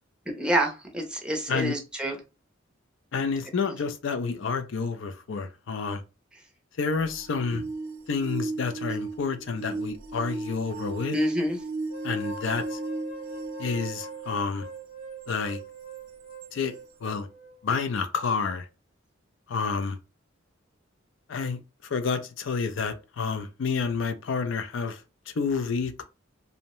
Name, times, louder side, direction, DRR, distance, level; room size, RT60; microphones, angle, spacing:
voice 1, 0.4-2.2 11.1-11.6, equal, 5° right, 0.5 m, -27 dB
voice 2, 3.1-6.0 6.8-7.6 8.1-11.2 12.0-12.8 13.6-14.7 15.3-15.6 16.5-16.7 17.0-17.3 17.6-18.7 19.5-20.0 21.3-25.0 25.4-26.0, left 5 dB, 70° left, 0.4 m, -29 dB
sound 1, 6.9-14.6 15.3-15.4 16.4-16.5, right 3 dB, 85° right, 0.5 m, -35 dB
sound 2, 11.9-17.9, right 2 dB, 40° left, 0.8 m, -42 dB
2.6 x 2.1 x 2.9 m
head